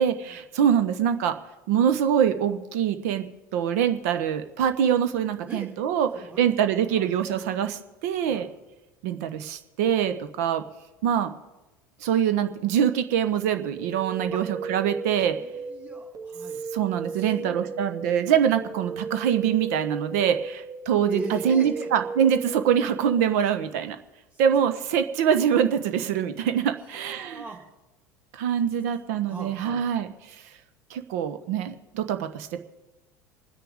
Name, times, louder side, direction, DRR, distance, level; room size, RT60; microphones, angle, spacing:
voice 1, 0.0-1.4 1.7-3.2 3.5-6.1 6.4-8.5 9.0-10.6 11.0-11.3 12.0-15.4 16.7-24.0 24.4-27.4 28.3-30.1 30.9-32.6, right 8 dB, 60° right, 10 dB, 1.1 m, -24 dB
voice 2, 6.1-7.1 8.2-8.5 14.3-14.4 15.3-16.6 17.1-17.7 18.3-18.4 21.1-21.9 24.3-24.4 26.8-27.6 29.2-29.8, right 3 dB, 15° right, -2 dB, 2.0 m, -40 dB
sound 1, 13.8-23.3, right 4 dB, 40° right, 2.1 m, -36 dB
27.5 x 10.0 x 3.7 m, 1.0 s
figure-of-eight pair, 70°, 9 cm